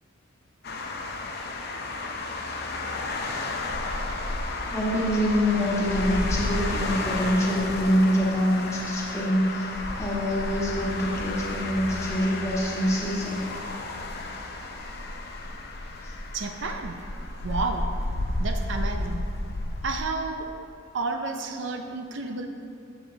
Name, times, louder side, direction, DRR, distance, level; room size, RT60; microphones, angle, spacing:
sound 1, 0.6-20.0, left 2 dB, 50° left, 0.6 m, -32 dB
voice 1, 4.7-13.4 16.0-16.1, equal, 15° left, -5 dB, 1.4 m, -25 dB
voice 2, 16.3-17.9 18.3-19.2 19.8-20.5 20.9-22.5, right 3 dB, 60° right, 5 dB, 0.5 m, -31 dB
7.9 x 7.1 x 3.8 m, 2.4 s
head